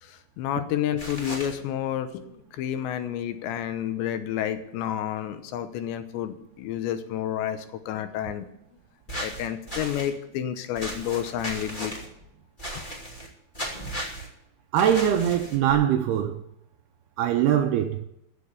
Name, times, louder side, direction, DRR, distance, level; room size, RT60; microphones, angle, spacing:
voice 1, 0.0-8.4 9.2-11.9, left 10 dB, 80° left, 3.1 m, -30 dB
sound 1, 1.0-1.5 9.1-10.1 10.8-12.1 12.6-13.3 13.5-14.3 14.8-15.7, equal, 15° left, 1.6 m, -35 dB
voice 2, 14.7-16.4 17.2-18.0, right 10 dB, 80° right, 2.3 m, -22 dB
15.0 x 7.0 x 8.4 m
omnidirectional pair, 5.2 m